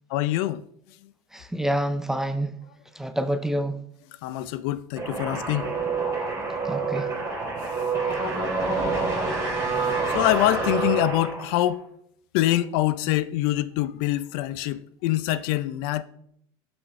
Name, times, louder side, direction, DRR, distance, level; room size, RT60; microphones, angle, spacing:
voice 1, 0.1-0.6 4.2-5.7 7.1-7.2 8.1-8.2 10.1-11.8 12.3-16.0, left 15 dB, 65° left, 0.5 m, -25 dB
voice 2, 1.3-2.5 3.0-3.8 6.7-7.1, right 1 dB, 5° right, 0.4 m, -27 dB
sound 1, 5.0-11.7, right 4 dB, 20° right, 2.8 m, -27 dB
7.9 x 6.2 x 4.2 m
cardioid pair, 155°, 13 cm